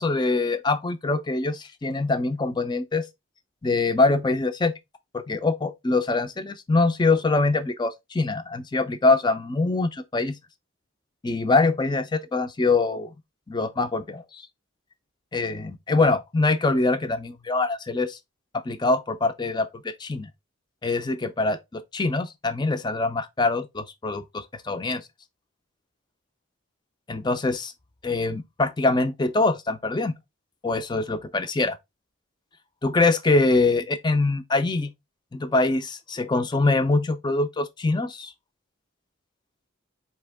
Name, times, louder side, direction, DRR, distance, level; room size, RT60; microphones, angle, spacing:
voice 1, 0.0-3.0 3.6-4.7 5.1-10.4 11.2-13.1 13.5-14.5 15.3-18.2 18.6-20.3 20.8-25.0 27.1-27.7 28.0-30.1 30.6-31.8 32.8-34.9 35.3-38.3, left 3 dB, 20° left, 0.4 m, -24 dB
4.3 x 2.9 x 3.4 m
head